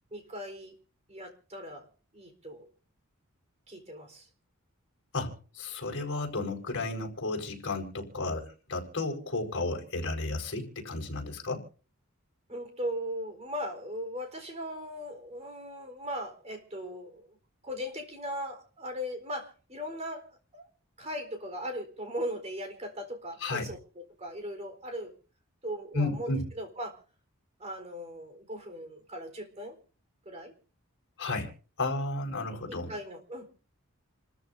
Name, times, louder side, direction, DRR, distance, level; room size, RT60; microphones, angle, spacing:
voice 1, 0.1-0.7 1.1-2.7 3.7-4.3 12.5-17.4 17.6-20.3 20.5-20.7 21.0-25.1 25.6-27.0 27.6-29.7 30.2-30.5 32.7-33.5, equal, 30° right, 4.1 m, -38 dB
voice 2, 5.1-11.6 23.4-23.7 25.9-26.4 31.2-31.5 31.8-32.9, left 2 dB, 55° left, 4.9 m, -33 dB
29.0 x 14.0 x 2.7 m
head